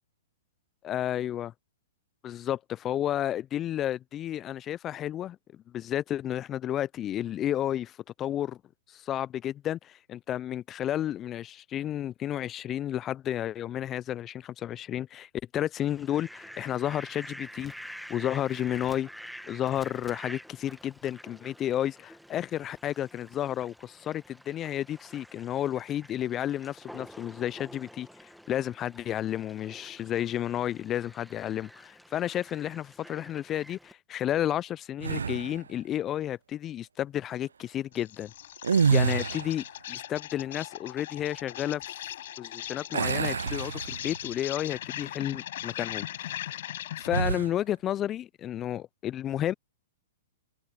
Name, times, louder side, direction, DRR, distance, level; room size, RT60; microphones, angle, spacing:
voice 1, 0.8-1.5 2.2-8.6 8.9-19.1 19.5-38.3 38.7-41.8 42.4-46.6 47.0-49.5, left 11 dB, 25° left, 0.5 m, -32 dB
Fowl, 15.8-33.9, equal, ahead, 1.7 m, -48 dB
sound 1, 35.0-35.7 38.6-39.7 42.9-44.4 44.8-45.0 47.1-47.6, right 6 dB, 75° right, 0.3 m, -27 dB
Insect, 37.9-47.3, left 12 dB, 60° left, 6.0 m, -39 dB
figure-of-eight pair, 110°, 0 cm